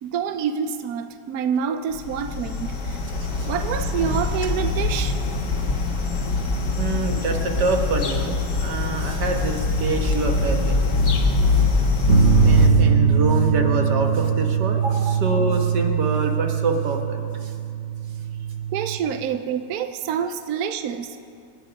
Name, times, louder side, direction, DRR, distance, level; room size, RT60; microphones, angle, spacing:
voice 1, 0.0-3.0 3.4-5.2 11.5-11.6 15.0-15.1 18.7-21.2, right 7 dB, 70° right, 8 dB, 1.1 m, -27 dB
sound 1, 1.9-12.7, left 3 dB, 85° left, 2.1 m, -23 dB
voice 2, 6.8-10.8 12.2-17.5 19.8-19.9, right 3 dB, 85° right, 3 dB, 2.0 m, -26 dB
sound 2, 12.1-19.0, right 6 dB, 45° right, 1.2 m, -21 dB
26.5 x 9.7 x 5.2 m, 2.4 s
omnidirectional pair, 1.8 m